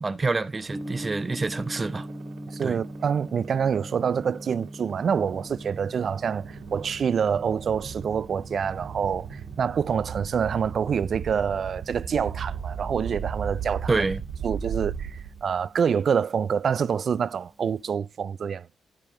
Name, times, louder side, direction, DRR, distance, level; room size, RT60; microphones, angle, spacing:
voice 1, 0.0-2.1 2.6-2.8 13.9-14.2, right 3 dB, 30° right, 1.1 m, -27 dB
sound 1, 0.6-15.7, right 7 dB, 75° right, 2.7 m, -38 dB
Gong, 0.7-17.9, right 1 dB, 5° right, 1.2 m, -43 dB
voice 2, 2.5-14.1 14.4-18.7, right 7 dB, 60° right, 0.5 m, -26 dB
12.5 x 5.3 x 3.8 m
supercardioid pair, 60°, 0 cm